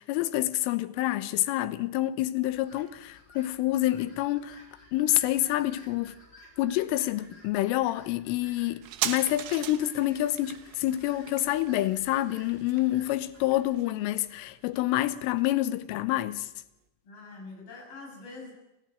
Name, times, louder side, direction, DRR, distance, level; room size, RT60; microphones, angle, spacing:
voice 1, 0.0-4.6 4.9-6.2 6.6-16.5, left 15 dB, 80° left, 3.4 m, -27 dB
sound 1, 2.5-13.6, left 1 dB, 20° left, 5.5 m, -55 dB
sound 2, 8.8-15.9 16.2-16.3, right 12 dB, 75° right, 3.3 m, -39 dB
voice 2, 17.0-18.5, left 3 dB, 45° left, 8.4 m, -44 dB
28.0 x 14.0 x 9.0 m
omnidirectional pair, 5.8 m